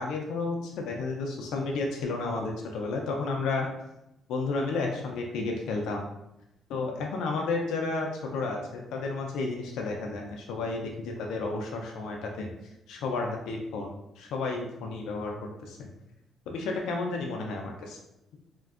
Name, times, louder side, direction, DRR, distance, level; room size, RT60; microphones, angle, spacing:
voice 1, 0.0-3.7 4.3-6.1 6.7-12.5 12.9-15.9 16.5-18.0, left 3 dB, 85° left, 1 dB, 0.3 m, -32 dB
2.5 x 2.1 x 2.4 m, 0.86 s
cardioid pair, 90°, 0 cm